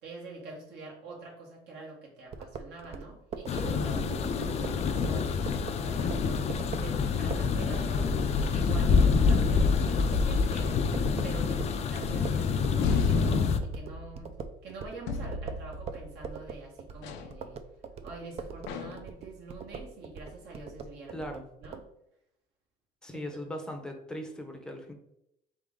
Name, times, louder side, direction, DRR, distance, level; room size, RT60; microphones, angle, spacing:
voice 1, 0.0-6.4 6.8-8.1 8.5-10.8 11.2-14.3 14.6-17.6 18.0-21.3 21.6-21.8 23.1-23.4, right 3 dB, 70° right, -2 dB, 1.8 m, -45 dB
sound 1, 2.3-12.8 13.1-21.8, right 5 dB, 35° right, 0.4 m, -41 dB
sound 2, 3.5-13.6, left 5 dB, 35° left, 0.4 m, -27 dB
sound 3, 12.8-14.4 15.1-16.3 17.0-17.4 18.7-19.1, left 4 dB, 85° left, 0.6 m, -34 dB
voice 2, 21.1-21.4 23.0-24.9, equal, 5° left, 4 dB, 0.7 m, -39 dB
3.7 x 3.6 x 3.6 m, 0.80 s
cardioid pair, 130°, 18 cm